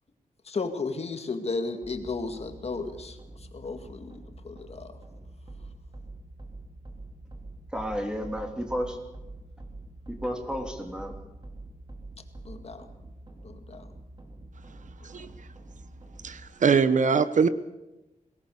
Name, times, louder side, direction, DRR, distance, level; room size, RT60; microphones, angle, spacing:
voice 1, 0.4-5.0 12.4-12.9 13.4-13.9, left 3 dB, 45° left, 7 dB, 2.0 m, -34 dB
sound 1, 1.8-16.5, right 2 dB, 35° right, 3.0 m, -46 dB
voice 2, 7.7-9.0 10.1-11.1, equal, 5° right, 4 dB, 3.1 m, -32 dB
voice 3, 16.2-17.5, right 5 dB, 60° right, 13 dB, 0.9 m, -22 dB
23.0 x 18.0 x 7.0 m, 0.97 s
wide cardioid pair, 145°, 14 cm